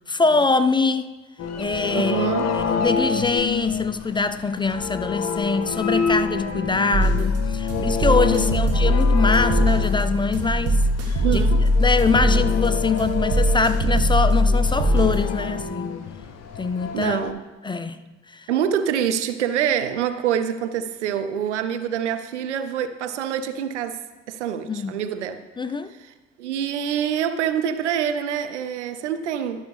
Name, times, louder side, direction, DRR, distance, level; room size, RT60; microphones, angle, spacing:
voice 1, 0.1-1.2 1.6-11.4 11.8-16.0 16.6-17.2 17.6-18.0 18.3-18.5 24.7-24.9 25.6-25.9, left 4 dB, 15° left, 11 dB, 0.4 m, -23 dB
sound 1, 1.4-17.3, left 5 dB, 50° left, 0.8 m, -29 dB
voice 2, 1.9-2.5 8.3-8.5 11.2-11.6 16.9-17.4 18.5-24.0 24.3-25.4 26.4-29.7, right 8 dB, 85° right, 10 dB, 0.5 m, -25 dB
sound 2, 6.9-15.2, equal, 45° right, 1.5 m, -21 dB
12.0 x 6.1 x 3.3 m, 1.2 s
figure-of-eight pair, 45°, 34 cm